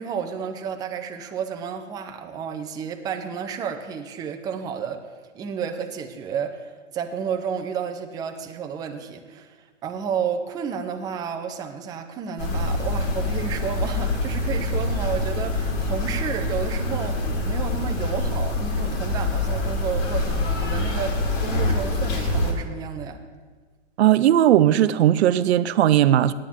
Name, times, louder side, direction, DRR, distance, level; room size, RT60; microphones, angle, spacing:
voice 1, 0.0-5.0 5.3-9.5 9.8-23.2, right 6 dB, 10° right, 5 dB, 0.5 m, -31 dB
sound 1, 12.4-22.5, left 2 dB, 45° left, 2.3 m, -25 dB
voice 2, 24.0-26.3, right 12 dB, 60° right, 14 dB, 0.6 m, -17 dB
9.0 x 8.7 x 7.2 m, 1.4 s
hypercardioid pair, 130°, 38 cm